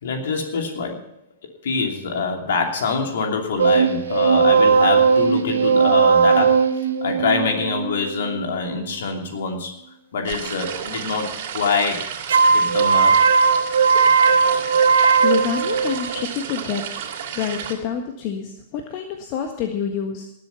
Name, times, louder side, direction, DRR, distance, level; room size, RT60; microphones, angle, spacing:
voice 1, 0.0-1.1 1.6-6.7 7.0-9.7 10.1-12.1 12.5-13.3, left 5 dB, 65° left, 3 dB, 2.8 m, -25 dB
sound 1, 3.6-8.9 12.3-16.2, right 5 dB, 75° right, 1.3 m, -18 dB
sound 2, 10.2-17.7, right 8 dB, 55° right, 2.8 m, -32 dB
voice 2, 15.2-17.0 17.3-20.3, left 7 dB, 45° left, 4 dB, 1.5 m, -27 dB
19.0 x 7.8 x 5.7 m, 0.79 s
figure-of-eight pair, 105°, 0 cm